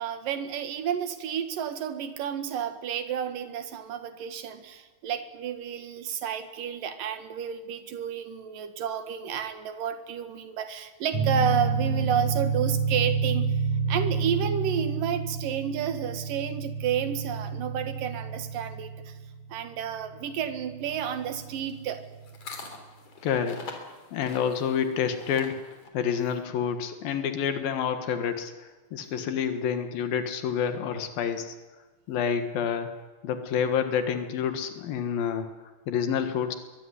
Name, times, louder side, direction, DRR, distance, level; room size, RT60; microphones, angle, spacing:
voice 1, 0.0-13.5 13.9-19.2 19.5-22.0, right 8 dB, 75° right, 9 dB, 3.4 m, -31 dB
sound 1, 11.1-22.3, right 4 dB, 40° right, 5.0 m, -30 dB
sound 2, 20.9-25.9, left 4 dB, 50° left, 4.4 m, -45 dB
voice 2, 23.2-23.6 24.1-31.5 32.1-32.9 33.2-35.5 35.9-36.6, left 7 dB, 85° left, 7 dB, 3.4 m, -28 dB
23.0 x 23.0 x 9.9 m, 1.2 s
omnidirectional pair, 4.0 m